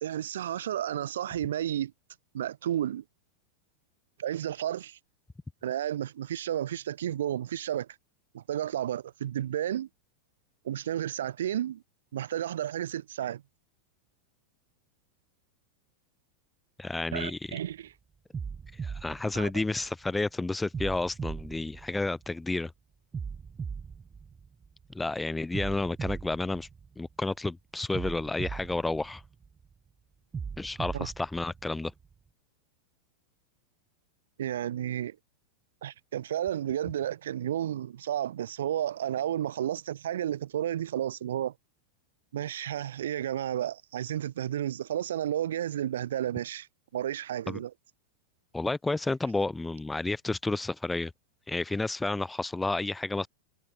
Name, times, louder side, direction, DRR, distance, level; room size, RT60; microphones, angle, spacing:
voice 1, 0.0-1.9 2.3-3.0 4.2-5.0 5.6-7.9 8.3-9.9 10.6-11.8 12.1-13.4 17.1-17.9 19.3-19.5 30.9-31.1 34.4-35.2 35.8-41.5 42.3-46.7 46.9-47.7, right 11 dB, 60° right, 2.7 m, -32 dB
voice 2, 16.8-17.6 18.8-22.7 24.9-26.7 27.0-29.2 30.6-31.9 47.5-47.6 48.5-51.1 51.5-53.3, left 2 dB, 10° left, 1.5 m, -31 dB
sound 1, 17.4-17.7 18.3-20.1 20.7-22.5 23.1-24.9 25.5-27.3 27.9-29.7 30.3-32.1, right 6 dB, 15° right, 6.6 m, -39 dB
figure-of-eight pair, 90°, 0 cm